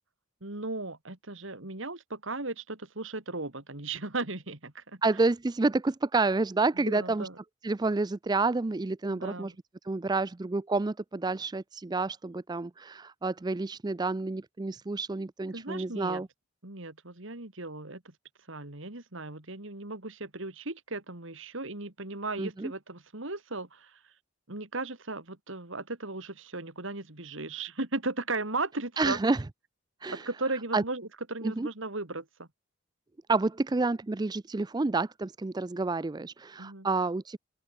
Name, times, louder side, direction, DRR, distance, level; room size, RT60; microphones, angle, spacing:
voice 1, 0.4-5.0 6.9-7.4 9.1-9.6 15.5-16.2 16.6-18.1 18.5-24.0 24.5-29.2 30.1-32.5 36.6-36.9, right 3 dB, 65° right, 2.9 m, -36 dB
voice 2, 5.0-7.3 7.6-9.5 9.9-16.3 22.4-22.7 29.0-29.4 30.0-30.3 30.7-30.8 31.4-31.7 33.3-37.4, right 3 dB, 20° right, 0.4 m, -29 dB
open air
head